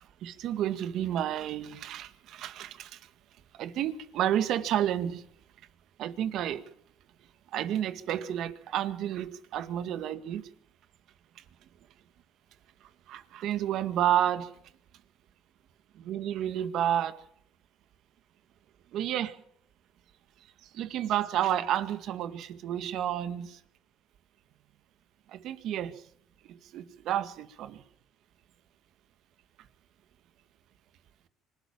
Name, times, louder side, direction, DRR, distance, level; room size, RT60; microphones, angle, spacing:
voice 1, 0.2-3.0 3.6-5.2 6.0-6.6 7.5-10.4 13.1-14.5 16.0-17.2 18.9-19.3 20.7-23.6 25.3-25.9 26.7-27.8, right 11 dB, 65° right, 12 dB, 1.9 m, -30 dB
25.5 x 12.0 x 8.8 m, 0.67 s
cardioid pair, 110°, 0 cm